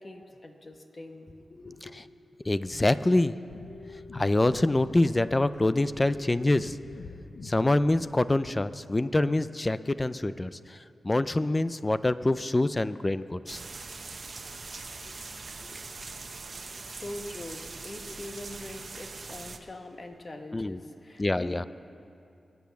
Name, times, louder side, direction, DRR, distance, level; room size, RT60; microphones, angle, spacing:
voice 1, 0.0-2.0 15.6-21.7, left 1 dB, 40° left, 5 dB, 1.3 m, -44 dB
voice 2, 2.5-3.3 4.1-6.8 7.4-10.8 11.0-13.6 20.5-20.8 21.2-21.7, left 2 dB, 25° left, 14 dB, 0.5 m, -25 dB
sound 1, 3.5-8.5, left 3 dB, 75° left, 0.9 m, -46 dB
sound 2, 13.5-19.6, right 4 dB, 50° right, 1.0 m, -42 dB
22.5 x 8.4 x 7.0 m, 2.6 s
wide cardioid pair, 80°, 0 cm